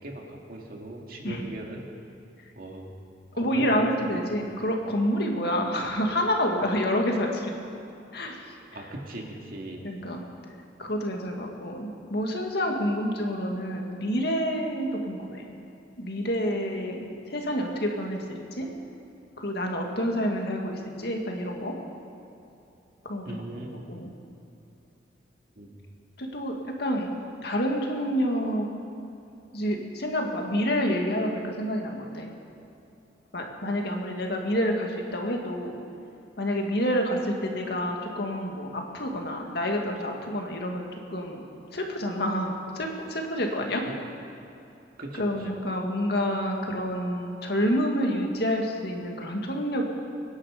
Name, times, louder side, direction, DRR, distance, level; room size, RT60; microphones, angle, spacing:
voice 1, 0.0-1.8 2.6-2.9 3.3-4.1 8.7-9.8 23.2-23.9 25.6-25.8 43.9-44.0 45.0-45.5, right 1 dB, 55° right, 0 dB, 2.2 m, -39 dB
voice 2, 3.4-7.5 8.1-8.5 9.8-10.2 10.8-15.4 16.0-18.7 19.4-21.7 23.1-23.2 23.6-24.1 26.2-26.5 26.8-28.7 29.5-32.3 33.3-35.8 36.4-41.4 41.7-43.8 45.2-49.8, equal, 60° left, 1 dB, 2.0 m, -28 dB
25.0 x 10.5 x 5.1 m, 2.9 s
head